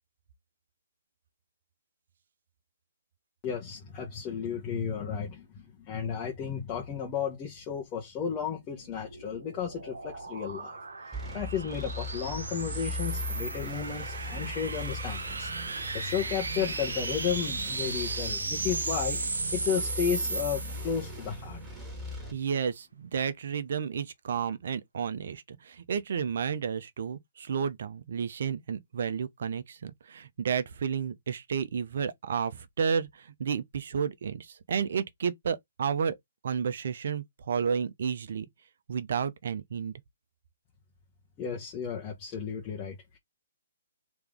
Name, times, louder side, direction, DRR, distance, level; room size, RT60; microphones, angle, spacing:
voice 1, 3.4-10.8 11.3-15.5 15.9-21.6 41.4-42.9, left 7 dB, 25° left, 1.0 m, -33 dB
sound 1, 8.8-21.3, right 3 dB, 80° right, 0.9 m, -36 dB
sound 2, 11.1-22.3, left 1 dB, 10° right, 1.9 m, -39 dB
voice 2, 22.3-36.2 36.4-38.5 38.9-39.9, right 7 dB, 60° right, 0.7 m, -31 dB
3.4 x 3.0 x 3.6 m
figure-of-eight pair, 135°, 0 cm